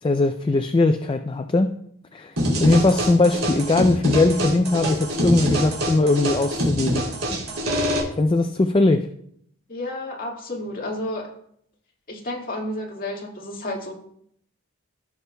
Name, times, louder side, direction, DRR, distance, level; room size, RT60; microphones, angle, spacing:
voice 1, 0.0-1.7 2.1-7.1 8.2-9.1, left 2 dB, 25° left, 7 dB, 0.3 m, -20 dB
sound 1, 2.4-8.0, equal, 75° right, 3.0 m, -25 dB
voice 2, 9.7-11.3 12.1-13.9, left 1 dB, 40° left, -1 dB, 1.9 m, -31 dB
16.0 x 6.7 x 2.2 m, 0.68 s
head